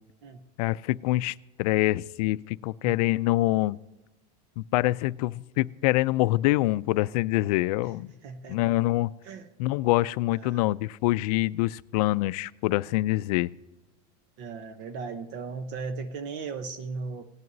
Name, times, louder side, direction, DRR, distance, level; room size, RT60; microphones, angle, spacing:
voice 1, 0.6-3.8 4.6-8.1 8.5-9.1 9.6-13.5, left 18 dB, 65° left, 17 dB, 0.4 m, -25 dB
voice 2, 8.2-8.6 9.2-9.5 10.3-10.6 14.4-17.3, right 4 dB, 50° right, 10 dB, 0.9 m, -37 dB
17.5 x 10.5 x 2.7 m, 1.1 s
supercardioid pair, 165°, 20 cm